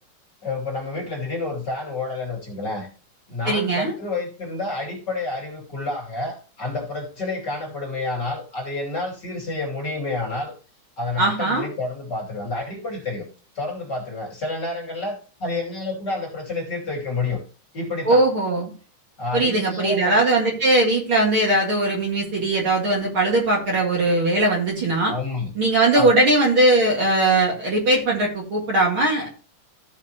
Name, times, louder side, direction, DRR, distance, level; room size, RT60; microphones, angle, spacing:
voice 1, 0.4-2.9 3.3-10.5 11.0-13.2 13.5-17.4 17.7-18.2 19.2-20.2 25.0-25.5 25.9-26.2, left 2 dB, 35° left, -1 dB, 2.8 m, -29 dB
voice 2, 3.4-3.9 11.2-11.7 18.0-18.7 19.3-25.1 25.6-29.3, right 2 dB, 45° right, -1 dB, 2.5 m, -20 dB
15.0 x 5.7 x 2.9 m, 0.37 s
omnidirectional pair, 3.6 m